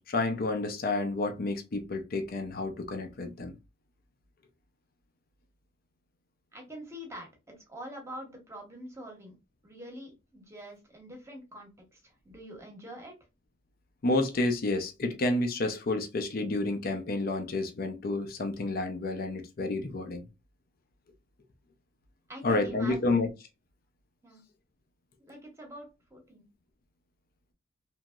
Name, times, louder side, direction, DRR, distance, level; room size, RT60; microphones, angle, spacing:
voice 1, 0.0-3.6 14.0-20.2 22.4-23.3, left 2 dB, 50° left, 0.5 m, -30 dB
voice 2, 6.5-7.3 7.7-9.4 9.6-12.0 12.2-13.1 22.3-23.2 24.2-24.4 25.3-26.4, equal, 15° right, 0.9 m, -45 dB
2.9 x 2.6 x 2.2 m
head